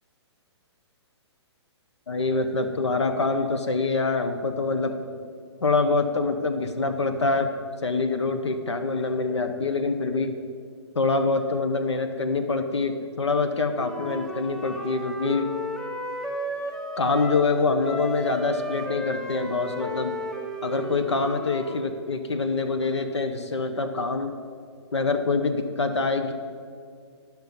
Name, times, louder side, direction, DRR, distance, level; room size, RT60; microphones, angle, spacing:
voice 1, 2.1-5.0 5.6-7.5 7.8-10.4 10.9-15.5 17.0-20.1 20.6-24.3 24.9-26.3, left 3 dB, 75° left, 7 dB, 0.7 m, -25 dB
Wind instrument woodwind instrument, 13.7-17.5 17.8-21.8, equal, 5° left, 0.6 m, -34 dB
10.5 x 5.8 x 5.5 m, 2.2 s
figure-of-eight pair, 120°, 15 cm